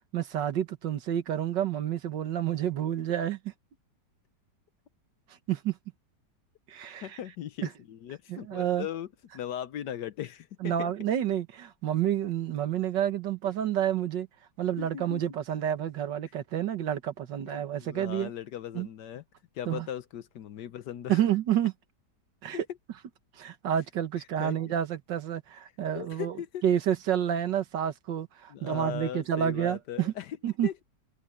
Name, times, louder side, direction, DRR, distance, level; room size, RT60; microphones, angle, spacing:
voice 1, 0.1-3.5 5.5-5.8 6.7-7.1 7.6-7.7 8.3-8.9 10.6-14.3 14.6-18.3 18.7-18.9 19.7-19.9 21.1-21.7 22.4-22.7 23.4-26.4 26.6-30.1 30.4-30.7, right 10 dB, 85° right, 1.9 m, -29 dB
voice 2, 7.0-9.1 9.3-10.9 14.8-15.2 17.4-19.2 19.5-21.2 22.5-22.6 24.4-24.6 25.9-26.6 28.5-30.4 30.6-30.8, left 10 dB, 75° left, 1.4 m, -38 dB
omnidirectional pair, 1.9 m